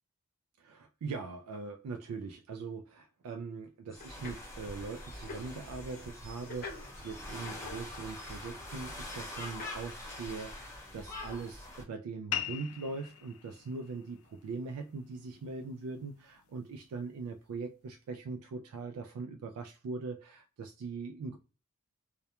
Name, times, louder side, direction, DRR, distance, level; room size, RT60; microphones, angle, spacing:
voice 1, 0.6-21.4, right 4 dB, 75° right, 0.3 m, -41 dB
sound 1, 3.9-8.1 8.3-8.9 9.4-10.1 10.5-10.7, left 4 dB, 45° left, 0.7 m, -49 dB
sound 2, 3.9-11.8, left 1 dB, 15° left, 0.8 m, -44 dB
sound 3, 12.3-17.3, left 10 dB, 70° left, 0.3 m, -43 dB
2.2 x 2.1 x 2.8 m
head